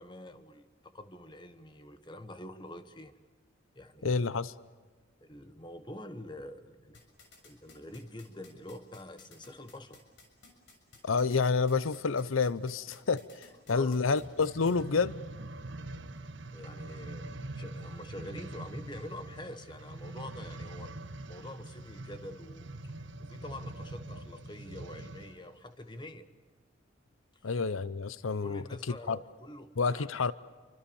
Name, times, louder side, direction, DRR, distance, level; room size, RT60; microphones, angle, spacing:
voice 1, 0.0-3.1 3.7-4.2 5.2-7.0 7.4-10.0 13.7-14.0 16.5-20.9 21.3-22.7 23.2-26.3 27.3-27.4 28.4-30.1, left 1 dB, 20° left, 10 dB, 1.4 m, -46 dB
voice 2, 4.0-4.5 11.0-15.2 27.4-29.2 29.8-30.3, left 4 dB, 85° left, 17 dB, 0.7 m, -29 dB
sound 1, 6.9-14.7, left 4 dB, 60° left, 6.5 m, -56 dB
sound 2, 14.1-25.4 26.0-26.1, right 2 dB, 65° right, 1.4 m, -44 dB
28.5 x 24.5 x 7.1 m, 1.4 s
head